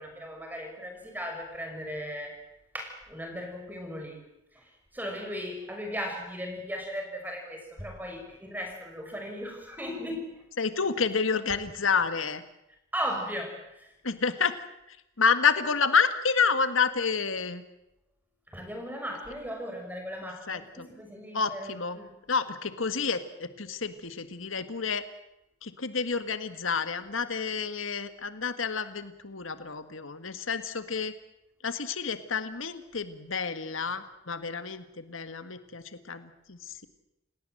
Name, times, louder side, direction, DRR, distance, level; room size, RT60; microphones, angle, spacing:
voice 1, 0.0-2.4 2.7-4.2 4.5-10.3 12.9-13.9 18.5-22.1, equal, 10° right, 3 dB, 5.8 m, -37 dB
voice 2, 10.6-12.4 14.0-14.6 14.9-17.6 20.5-20.6 21.3-22.0 22.3-25.0 25.6-31.1 31.6-36.9, left 5 dB, 85° left, 10 dB, 1.7 m, -29 dB
29.5 x 18.5 x 7.7 m, 0.86 s
head